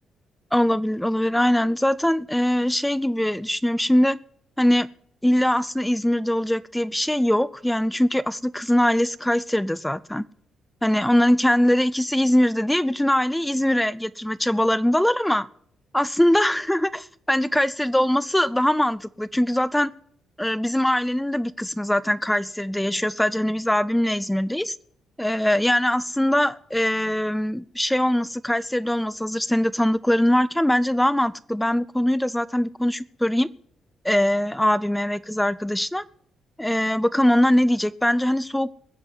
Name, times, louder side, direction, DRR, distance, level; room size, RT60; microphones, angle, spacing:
voice 1, 0.5-4.2 4.6-4.9 5.2-10.2 10.8-15.5 15.9-19.9 20.4-24.7 25.2-33.5 34.0-36.0 36.6-38.7, left 1 dB, 5° left, 0.5 m, -22 dB
21.0 x 7.6 x 6.2 m
cardioid pair, 90°, 0 cm